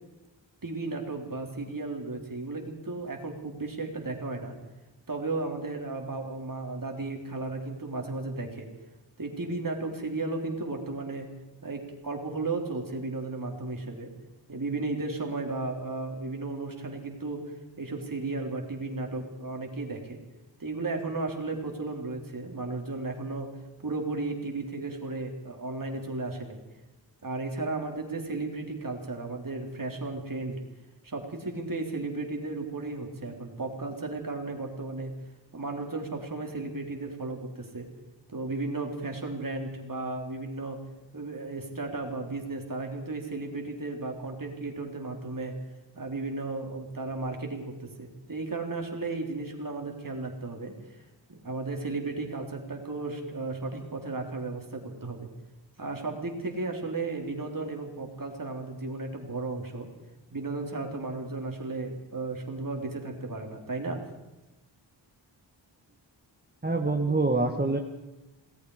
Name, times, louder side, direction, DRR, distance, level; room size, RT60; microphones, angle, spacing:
voice 1, 0.6-4.5 5.1-8.7 9.2-11.3 11.6-14.1 14.5-20.2 20.6-23.5 23.8-26.6 27.2-30.6 31.0-35.1 35.5-37.9 38.3-40.8 41.1-45.6 45.9-50.8 51.3-55.3 55.8-59.9 60.3-64.0, right 3 dB, 45° right, 2 dB, 4.1 m, -34 dB
voice 2, 66.6-67.8, right 3 dB, 20° right, 4 dB, 1.5 m, -25 dB
27.5 x 19.0 x 5.0 m, 1.0 s
wide cardioid pair, 85°, 45 cm